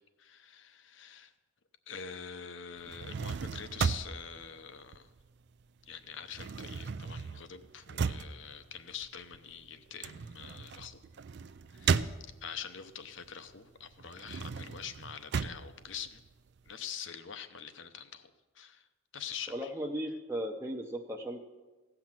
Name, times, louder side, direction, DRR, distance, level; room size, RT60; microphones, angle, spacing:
voice 1, 0.2-1.3 1.9-5.1 5.9-11.0 11.7-16.2 16.7-18.9 19.1-19.7, left 7 dB, 65° left, 10 dB, 0.8 m, -45 dB
sound 1, 2.8-5.6 5.9-12.7 13.2-16.7, right 5 dB, 55° right, 0.4 m, -36 dB
voice 2, 19.5-21.4, equal, 10° right, 1 dB, 0.7 m, -36 dB
16.0 x 5.9 x 7.5 m, 1.2 s
head